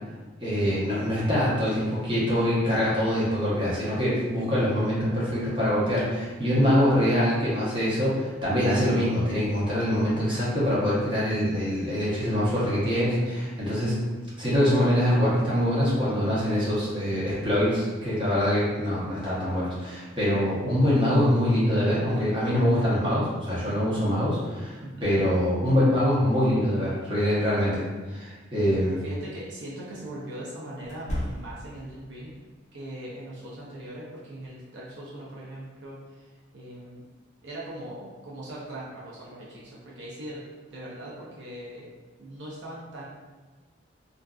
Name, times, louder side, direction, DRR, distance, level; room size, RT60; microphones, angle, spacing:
voice 1, 0.4-13.9 14.4-28.9, equal, 25° right, -9 dB, 0.8 m, -24 dB
voice 2, 12.6-13.3 24.8-25.1 28.9-32.3 32.7-36.3 36.5-37.0 37.4-40.4 40.7-41.9 42.2-43.0, right 1 dB, 70° right, -6 dB, 0.5 m, -40 dB
sound 1, 28.6-28.8 30.8-31.8, equal, 40° left, 0.5 m, -34 dB
2.5 x 2.3 x 2.3 m, 1.3 s
head